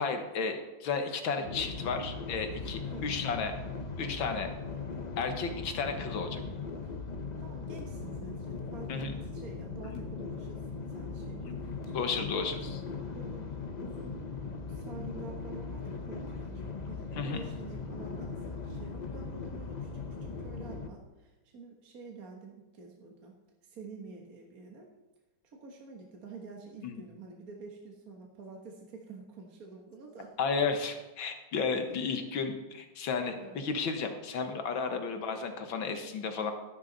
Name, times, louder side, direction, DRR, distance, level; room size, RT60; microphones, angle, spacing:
voice 1, 0.0-3.5 4.0-4.5 5.2-6.4 8.9-9.1 9.9-10.0 11.9-12.6 17.2-17.5 26.8-27.0 30.4-36.5, left 5 dB, 85° left, 6 dB, 2.1 m, -33 dB
sound 1, 1.4-20.9, left 4 dB, 35° left, 0.7 m, -39 dB
voice 2, 2.5-3.2 6.3-6.9 7.4-13.4 13.8-14.2 14.7-23.3 23.6-24.9 25.4-30.3 31.9-32.0 33.3-33.6 35.0-35.1, right 4 dB, 50° right, 0 dB, 1.8 m, -48 dB
14.0 x 11.0 x 4.0 m, 1.1 s
omnidirectional pair, 2.1 m